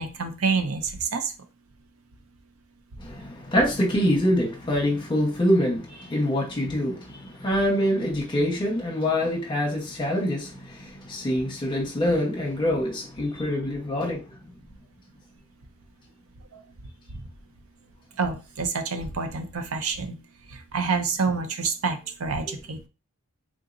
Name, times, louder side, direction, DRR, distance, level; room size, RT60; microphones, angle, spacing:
voice 1, 0.0-1.3 16.5-16.6 17.1-17.2 18.2-20.2 20.5-22.9, right 4 dB, 65° right, 0.5 m, -28 dB
voice 2, 3.0-14.5 22.4-22.5, left 1 dB, 20° left, 1.1 m, -25 dB
3.7 x 2.8 x 2.5 m
head